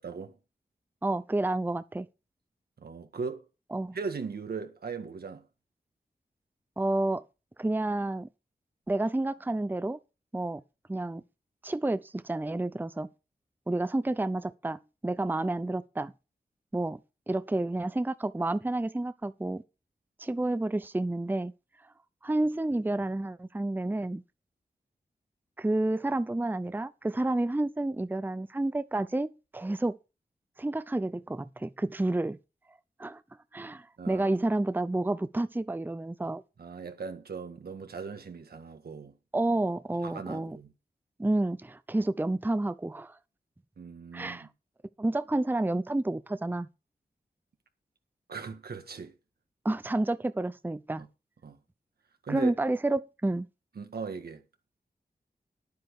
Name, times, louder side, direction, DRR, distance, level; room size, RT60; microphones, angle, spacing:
voice 1, 0.0-0.4 2.8-3.5 3.9-5.5 34.0-34.4 36.6-39.1 40.0-40.7 43.8-44.5 48.3-49.1 51.4-51.6 52.2-52.5 53.8-54.4, right 5 dB, 80° right, 1.8 m, -38 dB
voice 2, 1.0-2.1 3.7-4.0 6.8-7.2 7.6-8.3 8.9-10.0 10.3-10.6 10.9-11.2 11.6-13.1 13.7-16.1 16.7-17.0 17.3-19.6 20.2-21.5 22.2-24.2 25.6-29.9 30.6-32.4 33.0-33.2 33.5-36.4 39.3-40.6 41.2-43.2 44.1-44.5 45.0-46.7 49.6-51.0 52.3-53.5, right 2 dB, 10° right, 0.6 m, -30 dB
10.5 x 9.2 x 4.8 m
cardioid pair, 55°, 16 cm